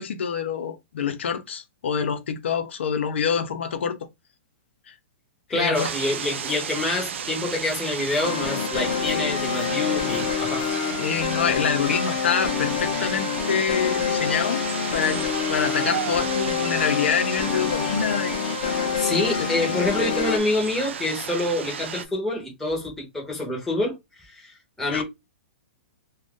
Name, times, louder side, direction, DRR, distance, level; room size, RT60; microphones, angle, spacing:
voice 1, 0.0-4.0 4.9-5.0 5.5-5.9 11.0-14.7 14.9-15.2 15.5-18.7 19.1-19.2 24.9-25.0, left 7 dB, 75° left, 0.7 m, -26 dB
voice 2, 5.5-10.7 19.0-24.0 24.3-25.0, left 2 dB, 5° left, 0.8 m, -26 dB
sound 1, 5.7-22.1, right 7 dB, 85° right, 0.5 m, -33 dB
sound 2, 8.2-20.4, left 7 dB, 45° left, 0.7 m, -27 dB
2.6 x 2.3 x 3.6 m
hypercardioid pair, 175°, 6 cm